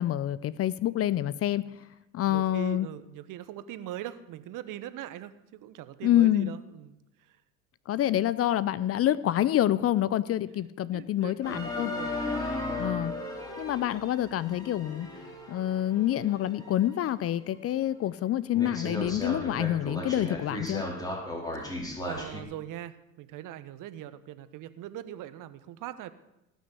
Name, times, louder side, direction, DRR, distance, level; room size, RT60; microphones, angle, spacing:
voice 1, 0.0-1.6 2.1-2.9 6.0-6.5 7.9-11.9 12.8-13.1 13.6-15.1 15.5-20.8, left 12 dB, 35° left, 18 dB, 0.6 m, -27 dB
voice 2, 2.2-7.0 7.3-7.4 10.9-12.3 21.6-26.1, right 12 dB, 50° right, 13 dB, 1.2 m, -41 dB
sound 1, 11.4-16.8 17.3-17.4 18.0-18.1 18.5-22.4, left 1 dB, 10° left, 4.0 m, -36 dB
18.5 x 6.3 x 8.3 m, 0.93 s
hypercardioid pair, 85°, 40 cm